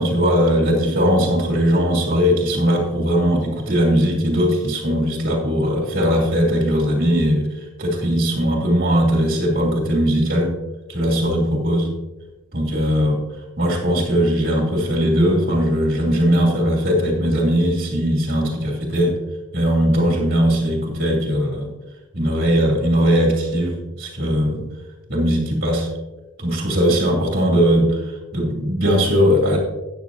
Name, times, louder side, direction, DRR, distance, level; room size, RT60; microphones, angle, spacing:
voice 1, 0.0-10.5 10.9-11.9 12.5-13.2 13.6-19.2 19.5-21.7 22.1-24.7 25.1-25.9 26.4-28.0 28.3-29.6, equal, 45° right, -1 dB, 2.7 m, -19 dB
13.5 x 9.6 x 2.7 m, 1.1 s
head